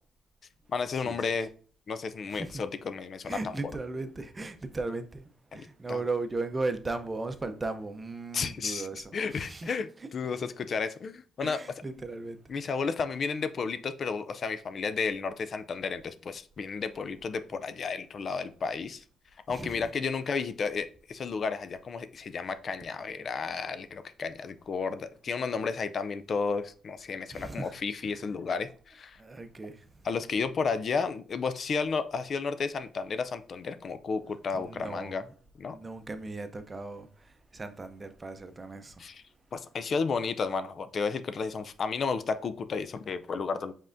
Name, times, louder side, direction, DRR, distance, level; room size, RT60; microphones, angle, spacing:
voice 1, 0.7-1.5 1.9-3.7 5.5-6.0 8.3-11.6 12.5-19.0 19.5-29.2 30.0-35.2 35.6-35.8 39.0-39.2 39.5-43.7, left 5 dB, 50° left, 0.4 m, -32 dB
voice 2, 2.3-2.6 3.3-9.7 11.4-12.4 19.5-19.9 27.3-27.7 29.2-29.9 34.5-35.1 35.7-39.1, right 3 dB, 25° right, 0.6 m, -37 dB
5.3 x 3.6 x 2.6 m
cardioid pair, 90°, 0 cm